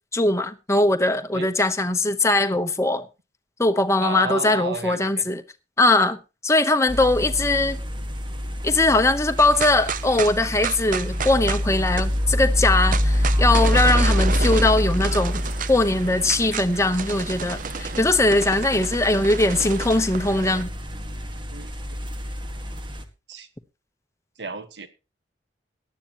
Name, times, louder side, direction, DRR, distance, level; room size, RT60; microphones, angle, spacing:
voice 1, 0.1-3.1 3.6-5.4 5.8-6.2 6.4-7.8 8.6-15.4 15.7-20.7, left 2 dB, 15° left, 1.0 m, -20 dB
voice 2, 4.0-5.3 21.5-22.0 23.3-23.5 24.4-24.9, right 4 dB, 75° right, 1.5 m, -33 dB
sound 1, 6.9-23.0, left 1 dB, 25° right, 1.7 m, -26 dB
sound 2, 9.4-20.6, right 6 dB, 50° right, 0.6 m, -32 dB
17.5 x 11.5 x 3.0 m
head